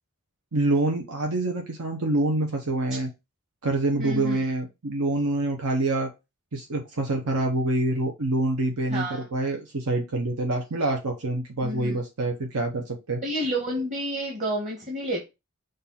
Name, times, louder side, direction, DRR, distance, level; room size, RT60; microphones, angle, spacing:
voice 1, 0.5-3.1 3.6-6.1 6.5-13.2, right 2 dB, 85° right, 2 dB, 1.0 m, -26 dB
voice 2, 4.0-4.4 8.9-9.2 11.6-12.0 13.2-15.2, right 1 dB, 35° right, -1 dB, 1.4 m, -29 dB
6.6 x 2.6 x 5.6 m, 0.25 s
head